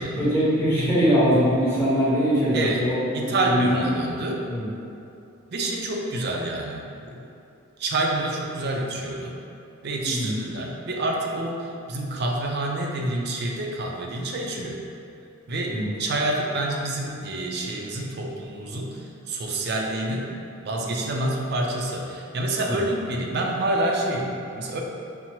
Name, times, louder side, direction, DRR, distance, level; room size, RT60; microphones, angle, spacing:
voice 1, 0.2-3.9 4.5-4.7 10.0-10.4 15.7-15.9 22.7-22.8, equal, 10° left, -10 dB, 0.9 m, -22 dB
voice 2, 2.5-2.9 3.1-4.4 5.5-7.2 7.8-9.4 9.8-14.8 15.5-20.3 20.6-24.8, right 1 dB, 50° right, 0 dB, 0.4 m, -28 dB
5.6 x 2.0 x 2.9 m, 2.7 s
head